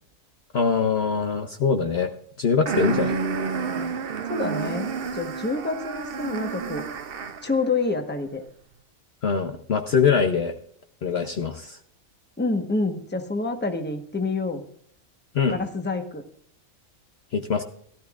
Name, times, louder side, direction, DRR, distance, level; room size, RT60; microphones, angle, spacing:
voice 1, 0.5-2.1 2.4-3.2 9.2-10.5 11.0-11.8 15.3-15.6 17.3-17.6, left 6 dB, 55° left, 6 dB, 0.9 m, -23 dB
sound 1, 2.7-7.6, right 5 dB, 50° right, 0.8 m, -29 dB
voice 2, 4.3-6.8 7.4-8.4 12.4-14.6 15.5-16.2, left 3 dB, 10° left, 6 dB, 1.0 m, -27 dB
17.0 x 12.5 x 2.5 m, 0.63 s
omnidirectional pair, 1.5 m